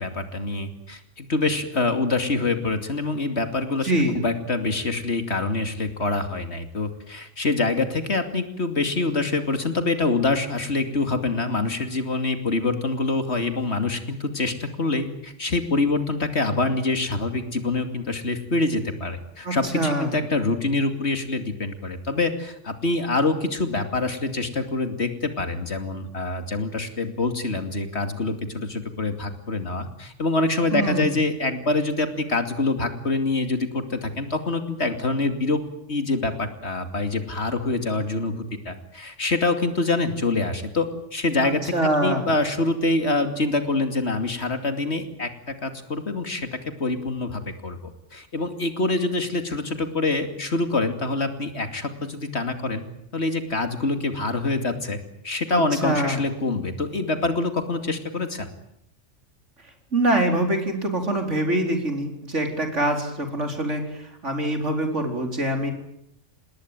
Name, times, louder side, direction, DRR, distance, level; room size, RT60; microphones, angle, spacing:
voice 1, 0.0-35.6 35.9-52.8 53.1-55.0 55.2-58.5, left 3 dB, 60° left, 8 dB, 2.9 m, -25 dB
voice 2, 3.8-4.2 19.4-20.1 30.7-31.1 41.4-42.2 55.5-56.2 59.9-65.7, right 1 dB, 65° right, 5 dB, 4.8 m, -24 dB
28.0 x 20.0 x 9.2 m, 0.75 s
omnidirectional pair, 1.3 m